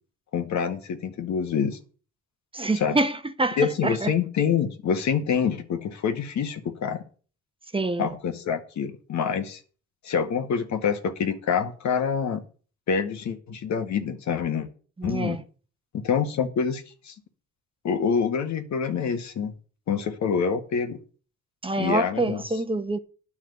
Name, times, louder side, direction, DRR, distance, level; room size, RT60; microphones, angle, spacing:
voice 1, 0.3-1.8 2.7-3.0 3.6-7.0 8.0-9.6 10.0-12.4 12.9-14.7 15.0-15.4 16.0-17.1 17.8-19.5 19.9-21.0 21.8-22.4, left 6 dB, 65° left, 1.8 m, -26 dB
voice 2, 2.5-4.1 7.7-8.1 15.0-15.4 21.6-23.0, right 2 dB, 15° right, 1.1 m, -26 dB
10.0 x 6.2 x 8.0 m
cardioid pair, 90°, 30 cm